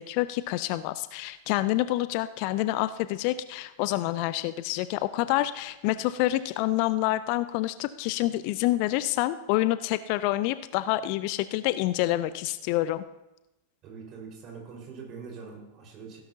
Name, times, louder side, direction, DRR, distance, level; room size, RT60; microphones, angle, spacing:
voice 1, 0.0-13.0, left 16 dB, 45° left, 15 dB, 0.4 m, -27 dB
voice 2, 13.8-16.2, right 5 dB, 35° right, -1 dB, 4.8 m, -43 dB
16.0 x 11.5 x 2.8 m, 0.98 s
figure-of-eight pair, 90°, 0 cm